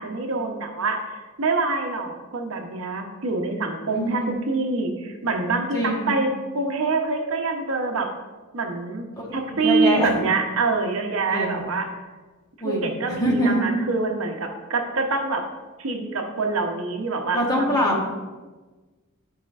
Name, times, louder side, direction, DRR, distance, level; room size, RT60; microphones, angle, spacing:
voice 1, 0.0-6.3 6.5-8.1 8.5-9.0 9.3-11.9 12.6-15.4 15.8-18.0, right 3 dB, 70° right, 3 dB, 0.8 m, -25 dB
voice 2, 3.9-4.4 5.7-6.4 9.1-10.1 11.3-11.6 12.6-13.6 17.3-18.0, equal, 20° left, -2 dB, 1.2 m, -24 dB
10.5 x 5.0 x 2.4 m, 1.3 s
head